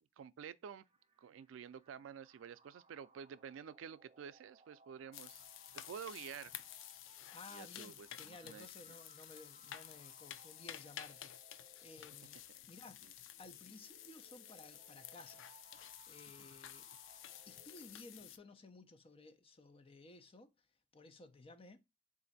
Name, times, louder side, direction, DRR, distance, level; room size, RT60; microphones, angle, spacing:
voice 1, 0.2-0.8 1.2-5.4 5.7-6.5 7.5-9.0 16.4-16.5, right 7 dB, 90° right, 0.3 m, -50 dB
sound 1, 0.7-18.7, right 3 dB, 30° right, 0.5 m, -67 dB
sound 2, 5.1-18.4, left 11 dB, 85° left, 0.4 m, -52 dB
voice 2, 7.3-12.4 12.7-13.0 13.4-15.5 16.1-16.9 17.5-20.5 20.9-21.8, left 2 dB, 30° left, 0.5 m, -56 dB
4.1 x 2.6 x 3.9 m
head